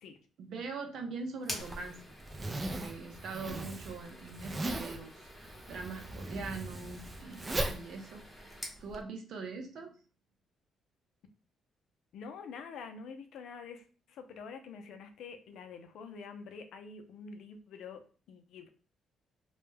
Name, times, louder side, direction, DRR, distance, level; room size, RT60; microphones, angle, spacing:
voice 1, 0.4-2.0 2.6-9.9, right 4 dB, 70° right, 4 dB, 0.6 m, -42 dB
sound 1, 1.4-8.8, left 1 dB, 15° left, 0.9 m, -48 dB
Zipper (clothing), 1.6-9.0, right 1 dB, 25° right, 0.4 m, -39 dB
voice 2, 12.1-18.7, left 5 dB, 75° left, 7 dB, 0.4 m, -47 dB
2.2 x 2.1 x 3.2 m, 0.39 s
cardioid pair, 90°, 0 cm